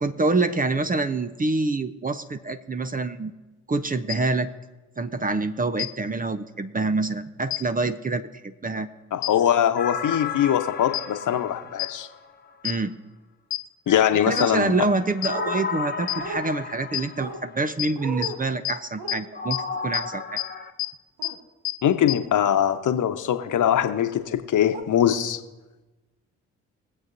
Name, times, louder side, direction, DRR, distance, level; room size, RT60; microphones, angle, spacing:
voice 1, 0.0-3.3 3.7-4.5 5.0-8.9 12.6-12.9 14.3-20.4, right 3 dB, 20° right, 10 dB, 0.8 m, -26 dB
sound 1, 4.1-4.2 5.8-5.9 7.5-7.6 9.2-9.3 10.9-11.0 11.8-11.9 12.6-12.7 13.5-13.6 14.4-14.5 15.2-15.3 16.1-16.2 16.9-17.0 17.8-17.9 18.2-18.3 18.6-18.7 19.1-19.2 19.5-19.6 19.9-20.0 20.4-20.5 20.8-20.9 21.2-21.3 21.6-21.7 22.1-22.2, left 16 dB, 75° left, 0.8 m, -26 dB
voice 2, 9.1-12.1 13.9-14.7 21.8-25.4, left 10 dB, 55° left, 8 dB, 1.1 m, -22 dB
sound 2, 9.8-12.6 13.9-17.7 19.4-20.7, left 5 dB, 25° left, 1.2 m, -34 dB
sound 3, 15.3-15.6 16.2-16.4 17.2-17.4 18.0-18.4 19.0-19.2 21.2-21.4 22.2-22.5 23.8-23.9 24.7-24.8, right 3 dB, 75° right, 1.5 m, -35 dB
23.0 x 7.8 x 2.7 m, 1.2 s
hypercardioid pair, 45°, 37 cm